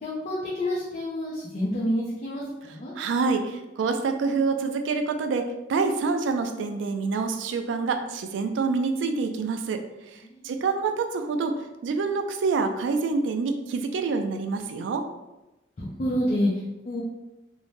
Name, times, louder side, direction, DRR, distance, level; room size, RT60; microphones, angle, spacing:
voice 1, 0.0-2.9 10.2-10.5 15.8-17.0, equal, 45° left, -5 dB, 0.5 m, -28 dB
voice 2, 3.0-9.8 10.1-15.1, right 4 dB, 85° right, 7 dB, 0.3 m, -27 dB
2.6 x 2.1 x 3.1 m, 0.99 s
head